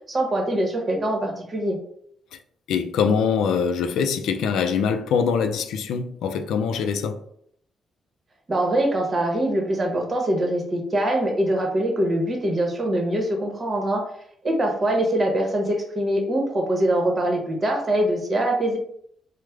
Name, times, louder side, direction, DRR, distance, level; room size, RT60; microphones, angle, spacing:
voice 1, 0.1-1.8 8.5-14.0 14.4-18.8, right 1 dB, 35° right, 0.9 m, -23 dB
voice 2, 2.7-7.2, left 6 dB, 85° left, 0.3 m, -23 dB
3.2 x 2.0 x 3.4 m
cardioid pair, 105°, 0 cm